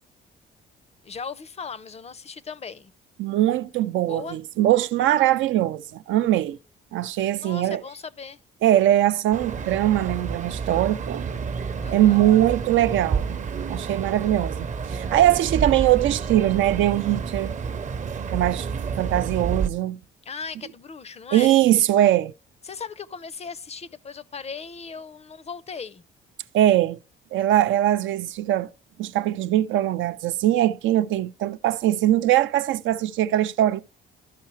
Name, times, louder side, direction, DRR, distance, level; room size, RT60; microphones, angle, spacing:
voice 1, 1.0-2.9 4.0-4.4 7.4-8.4 11.8-12.2 20.2-21.6 22.6-26.0, left 5 dB, 35° left, 0.5 m, -37 dB
voice 2, 3.2-6.6 6.9-7.8 8.6-11.5 11.9-13.4 13.7-17.6 18.3-18.7 19.0-20.0 21.3-22.3 26.5-27.0 27.3-28.7 29.0-33.8, right 13 dB, 80° right, 0.4 m, -21 dB
sound 1, 9.3-19.7, right 5 dB, 40° right, 0.6 m, -30 dB
13.5 x 5.6 x 3.1 m
cardioid pair, 90°, 20 cm